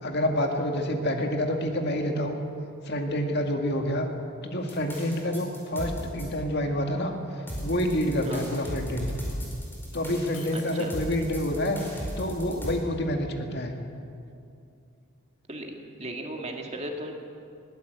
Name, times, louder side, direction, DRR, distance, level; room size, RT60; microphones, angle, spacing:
voice 1, 0.0-2.4 2.8-4.1 4.4-9.1 9.9-11.8 12.2-13.8, left 1 dB, 50° left, 3 dB, 2.0 m, -28 dB
sound 1, 4.7-6.2 7.5-12.7, equal, 10° left, 4.7 m, -36 dB
Shatter, 10.3-11.4, left 6 dB, 85° left, 4.4 m, -48 dB
voice 2, 10.5-11.0 15.5-17.1, right 1 dB, 30° right, 2 dB, 2.0 m, -36 dB
21.5 x 16.0 x 8.1 m, 2.5 s
head